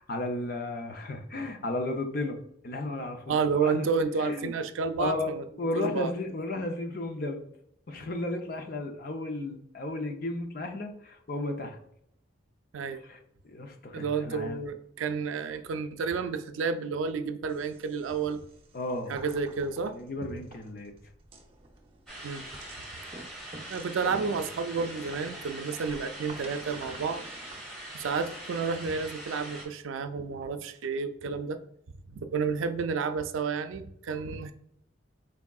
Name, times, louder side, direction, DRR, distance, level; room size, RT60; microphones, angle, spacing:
voice 1, 0.0-3.9 4.2-4.5 5.0-5.3 5.6-7.4 7.9-11.8 12.9-13.2 13.4-14.6 18.7-19.2 19.9-20.9, left 2 dB, 50° left, 4 dB, 0.5 m, -34 dB
voice 2, 3.3-5.4 5.7-6.1 12.7-13.0 13.9-18.4 19.1-20.0 22.2-22.4 23.7-27.2 27.9-31.6 32.1-34.5, right 5 dB, 90° right, 9 dB, 0.4 m, -31 dB
sound 1, 17.5-27.6, right 2 dB, 25° right, 0.5 m, -50 dB
sound 2, 22.1-29.7, right 1 dB, 5° left, 1.1 m, -43 dB
4.6 x 3.5 x 2.3 m, 0.72 s
head